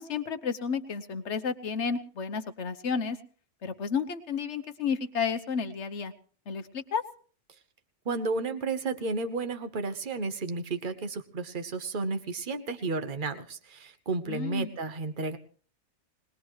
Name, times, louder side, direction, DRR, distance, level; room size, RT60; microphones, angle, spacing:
voice 1, 0.0-3.2 3.6-6.1 6.5-7.0 14.3-14.8, left 6 dB, 65° left, 9 dB, 1.3 m, -32 dB
voice 2, 8.1-15.4, right 3 dB, 40° right, 8 dB, 1.3 m, -32 dB
21.0 x 19.5 x 3.2 m, 0.42 s
omnidirectional pair, 1.3 m